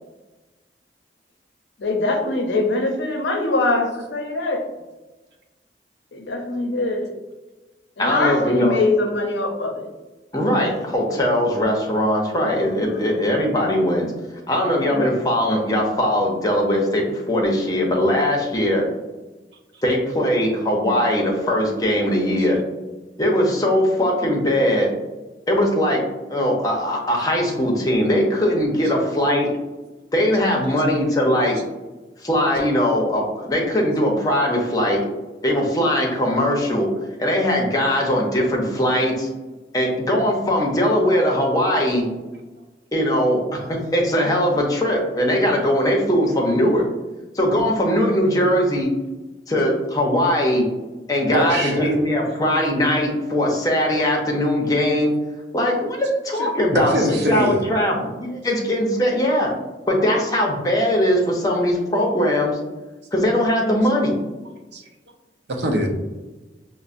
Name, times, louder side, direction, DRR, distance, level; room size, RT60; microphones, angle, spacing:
voice 1, 1.8-4.6 6.1-7.1 8.0-9.9 12.8-13.1 14.8-15.0, left 2 dB, 80° left, 3 dB, 0.6 m, -23 dB
voice 2, 8.0-8.8 10.3-14.1 14.5-18.8 19.8-22.6 23.2-24.9 25.5-26.0 26.3-29.5 30.1-31.6 32.2-35.0 35.4-36.9 37.2-39.3 39.7-42.1 42.9-46.8 47.3-48.9 49.5-50.7 51.1-55.1 55.5-59.5 59.9-62.6 63.1-64.2, equal, 20° left, -1 dB, 0.6 m, -20 dB
voice 3, 51.3-51.9 56.4-57.6 64.7-64.8 65.5-65.9, equal, 70° right, 2 dB, 0.6 m, -22 dB
5.3 x 2.1 x 2.5 m, 1.2 s
head